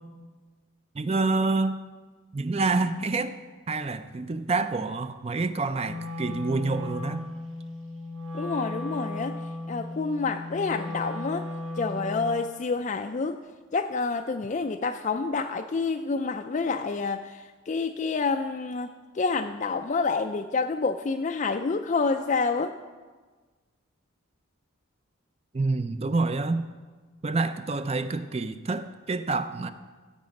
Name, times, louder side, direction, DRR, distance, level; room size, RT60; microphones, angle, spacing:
voice 1, 0.9-1.8 2.3-3.4 3.7-7.3 25.5-26.7 27.2-29.7, right 3 dB, 30° right, 11 dB, 0.4 m, -27 dB
Wind instrument woodwind instrument, 5.8-12.5, left 2 dB, 65° right, 1.7 m, -36 dB
voice 2, 8.3-9.4 9.7-11.5 11.8-13.4 13.7-22.7, left 4 dB, 35° left, 6 dB, 0.3 m, -28 dB
15.5 x 7.4 x 5.2 m, 1.4 s
head